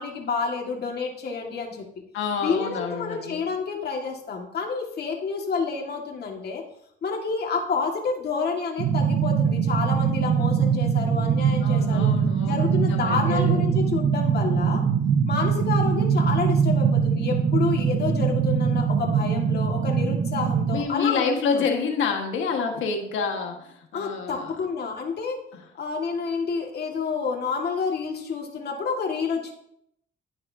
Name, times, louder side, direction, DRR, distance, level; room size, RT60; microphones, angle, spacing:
voice 1, 0.0-1.9 2.4-6.6 7.0-12.1 12.5-14.8 15.2-21.7 23.9-25.4 25.8-29.5, left 5 dB, 55° left, 1 dB, 2.0 m, -29 dB
voice 2, 2.1-3.4 11.6-13.6 20.7-24.5 25.5-25.6, left 5 dB, 80° left, 3 dB, 1.6 m, -28 dB
sound 1, 8.8-20.8, right 7 dB, 60° right, 1.0 m, -22 dB
11.5 x 8.9 x 2.8 m, 0.73 s
cardioid pair, 90°, 20 cm